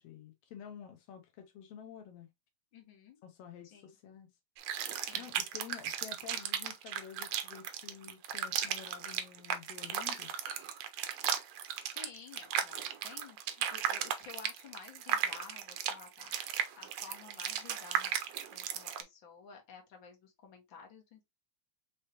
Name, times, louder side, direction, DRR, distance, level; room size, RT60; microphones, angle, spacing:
voice 1, 0.0-2.3 3.2-4.3 5.1-10.3, left 8 dB, 85° left, 1.3 m, -50 dB
voice 2, 2.7-3.2 3.6-4.0 5.0-5.3 11.5-16.4 16.7-18.2 18.5-21.2, left 6 dB, 50° left, 1.6 m, -53 dB
sound 1, 4.6-19.0, right 10 dB, 85° right, 1.4 m, -36 dB
5.4 x 3.3 x 2.8 m
omnidirectional pair, 3.8 m